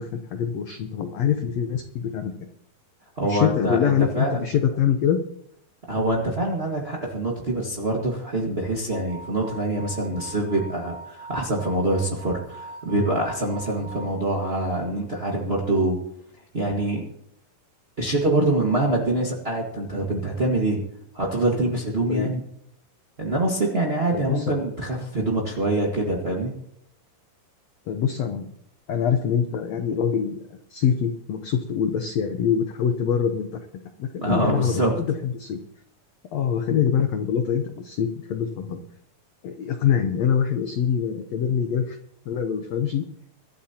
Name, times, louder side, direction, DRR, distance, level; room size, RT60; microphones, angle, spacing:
voice 1, 0.0-2.3 3.2-5.2 22.1-22.3 24.1-24.6 27.9-28.5 28.9-33.6 34.0-35.6 36.3-38.8 39.4-42.0 42.2-43.1, left 8 dB, 85° left, 6 dB, 1.4 m, -24 dB
voice 2, 3.2-4.4 5.9-16.0 16.5-17.0 18.0-20.8 21.1-22.4 23.2-26.5 34.2-34.9, right 2 dB, 55° right, -2 dB, 0.6 m, -25 dB
sound 1, 8.9-14.1, right 2 dB, 75° right, 3.6 m, -41 dB
24.0 x 12.5 x 2.9 m, 0.71 s
omnidirectional pair, 4.3 m